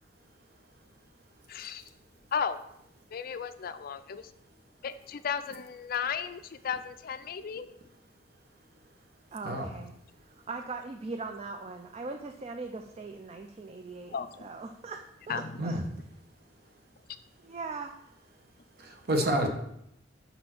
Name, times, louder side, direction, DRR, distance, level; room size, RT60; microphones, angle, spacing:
voice 1, 1.5-1.8 2.3-2.6 3.1-4.3 4.8-7.7 14.1-14.3 15.3-15.7, left 7 dB, 50° left, 12 dB, 0.4 m, -34 dB
voice 2, 9.3-10.0 10.3-15.8 17.4-18.1 19.2-19.5, right 3 dB, 35° right, 5 dB, 0.4 m, -40 dB
voice 3, 18.8-19.5, right 1 dB, 55° right, 4 dB, 1.0 m, -28 dB
5.5 x 4.3 x 5.9 m, 0.79 s
head